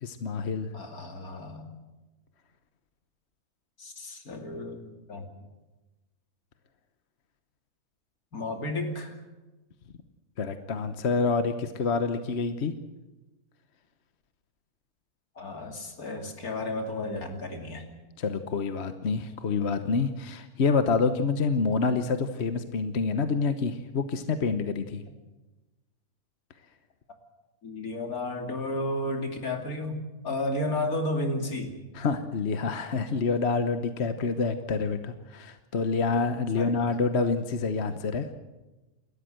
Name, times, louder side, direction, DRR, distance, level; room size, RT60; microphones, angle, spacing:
voice 1, 0.0-0.7 10.4-12.7 18.2-25.0 31.9-38.3, left 4 dB, 50° left, 9 dB, 1.2 m, -27 dB
voice 2, 0.7-1.7 3.8-5.3 8.3-9.2 15.3-17.9 27.6-31.8 36.6-36.8, left 1 dB, 70° left, 4 dB, 3.2 m, -33 dB
29.0 x 13.5 x 7.8 m, 1.1 s
omnidirectional pair, 1.6 m